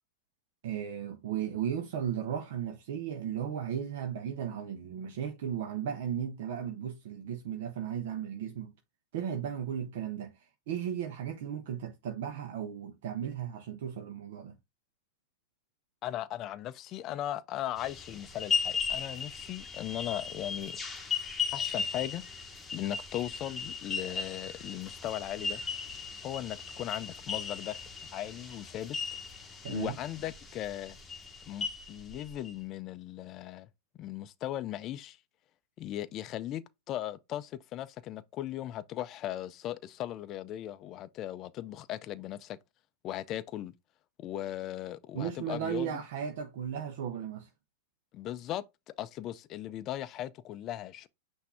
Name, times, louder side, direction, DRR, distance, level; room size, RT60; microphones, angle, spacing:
voice 1, 0.6-8.7 9.1-14.5 29.6-30.0 45.1-47.5, right 9 dB, 65° right, 0.7 m, -35 dB
voice 2, 16.0-20.8 21.5-22.2 22.7-25.6 26.2-27.8 28.1-29.0 29.7-31.0 31.5-33.7 34.0-35.2 35.8-42.6 43.0-43.7 44.2-45.9 48.1-48.6 49.0-51.1, left 12 dB, 35° left, 0.4 m, -38 dB
sound 1, 17.8-32.5, left 5 dB, 15° left, 1.1 m, -37 dB
5.8 x 2.6 x 3.4 m
hypercardioid pair, 125°, 0 cm